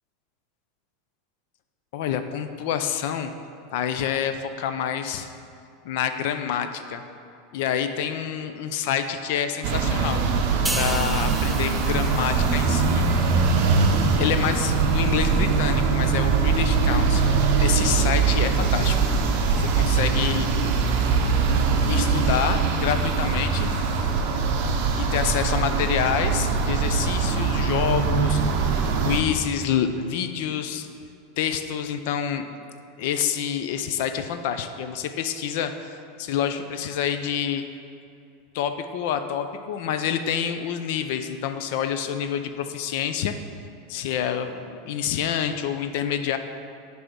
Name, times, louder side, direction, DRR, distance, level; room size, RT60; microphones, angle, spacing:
voice 1, 1.9-3.3 3.7-5.3 5.8-7.0 7.5-10.2 10.7-13.1 14.1-19.0 19.6-20.5 21.8-23.8 24.9-28.4 29.0-30.9 31.4-32.5 33.0-37.6 38.5-43.3 43.9-46.4, left 9 dB, 60° left, 9 dB, 0.5 m, -27 dB
sound 1, 9.6-29.2, right 5 dB, 55° right, 0.8 m, -22 dB
sound 2, 10.7-14.2 14.6-14.8, right 1 dB, 5° right, 0.4 m, -35 dB
10.0 x 3.5 x 5.1 m, 2.6 s
supercardioid pair, 160°, 0 cm